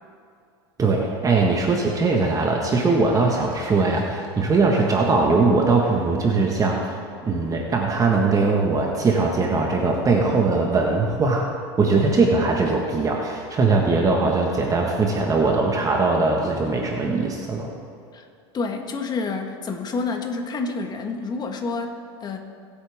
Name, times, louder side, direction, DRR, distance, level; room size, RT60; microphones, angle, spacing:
voice 1, 0.8-11.5 11.8-17.7, right 3 dB, 25° right, 0 dB, 1.5 m, -21 dB
voice 2, 18.5-22.4, left 4 dB, 30° left, 4 dB, 1.6 m, -28 dB
22.0 x 8.4 x 3.6 m, 2.5 s
hypercardioid pair, 100°, 13 cm